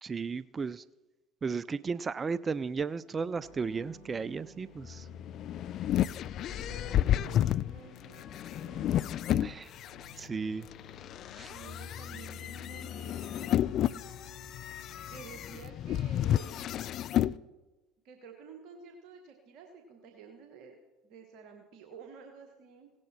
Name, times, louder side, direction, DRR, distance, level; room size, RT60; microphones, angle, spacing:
voice 1, 0.0-0.8 1.4-5.1 9.3-9.7 10.2-10.7 11.3-11.5, right 5 dB, 30° right, 19 dB, 0.4 m, -34 dB
sound 1, 3.4-15.5, left 6 dB, 70° left, 4.6 m, -49 dB
sound 2, 5.1-10.1 10.7-17.4, left 11 dB, 50° left, 0.3 m, -31 dB
voice 2, 6.3-8.8 11.5-13.7 15.1-16.5 18.0-20.8 21.0-22.9, right 6 dB, 60° right, 3 dB, 1.4 m, -51 dB
17.0 x 10.5 x 4.3 m, 1.1 s
hypercardioid pair, 75°, 0 cm